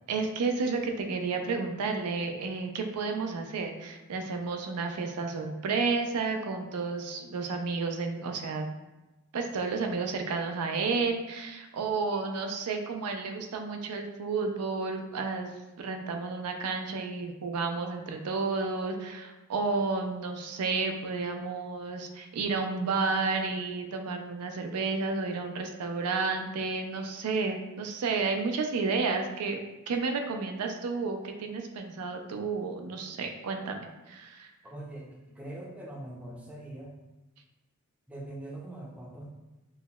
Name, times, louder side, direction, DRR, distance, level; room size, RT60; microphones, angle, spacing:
voice 1, 0.1-8.6 9.3-15.5 15.8-29.6 29.9-33.8 34.1-34.5, right 4 dB, 90° right, 4 dB, 0.4 m, -31 dB
voice 2, 34.6-36.9 38.1-39.3, right 1 dB, 5° right, -3 dB, 0.5 m, -42 dB
5.4 x 2.0 x 2.2 m, 1.1 s
head